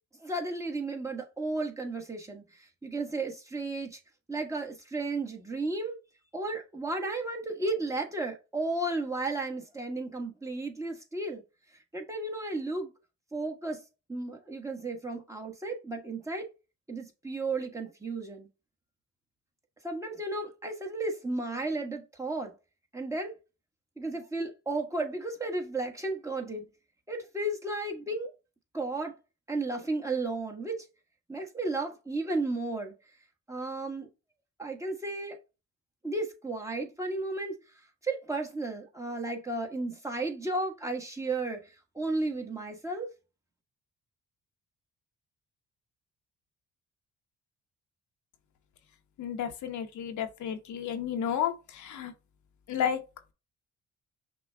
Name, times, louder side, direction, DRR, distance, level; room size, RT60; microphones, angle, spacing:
voice 1, 0.2-4.0 4.3-6.0 6.3-11.4 11.9-12.9 13.3-13.8 14.1-16.5 16.9-18.5 19.8-22.5 22.9-23.3 24.0-26.6 27.1-28.3 28.7-29.1 29.5-30.8 31.3-32.9 33.5-34.1 34.6-35.4 36.0-43.1, right 2 dB, 10° right, 1.3 m, -34 dB
voice 2, 49.2-52.1 52.7-53.0, left 8 dB, 75° left, 0.9 m, -32 dB
6.0 x 2.3 x 3.4 m
cardioid pair, 90°, 30 cm